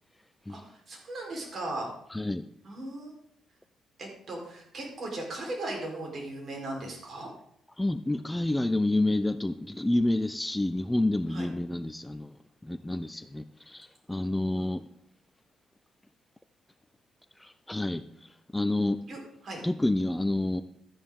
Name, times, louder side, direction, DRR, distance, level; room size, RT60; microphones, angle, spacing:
voice 1, 0.5-1.9 2.6-3.1 4.0-7.3 11.3-11.5 19.1-19.6, right 2 dB, 50° right, 0 dB, 4.1 m, -37 dB
voice 2, 2.1-2.4 7.8-12.3 12.6-14.8 17.4-19.0 19.6-20.6, left 1 dB, 10° left, 12 dB, 0.5 m, -29 dB
12.5 x 9.8 x 3.7 m, 0.71 s
cardioid pair, 90°, 0 cm